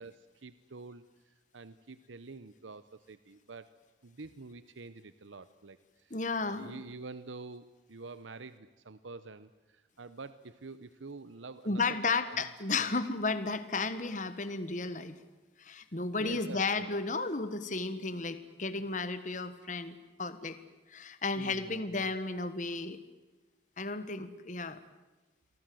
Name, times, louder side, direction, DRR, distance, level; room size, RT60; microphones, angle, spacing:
voice 1, 0.0-3.7 4.0-6.2 6.4-12.4 12.7-12.9 16.2-16.9 18.7-18.9 21.4-22.1, right 3 dB, 90° right, 14 dB, 0.9 m, -47 dB
voice 2, 6.1-6.8 11.6-15.1 15.6-20.6 20.9-23.0 23.8-24.8, left 3 dB, 40° left, 12 dB, 1.4 m, -33 dB
29.0 x 23.5 x 7.8 m, 1.2 s
head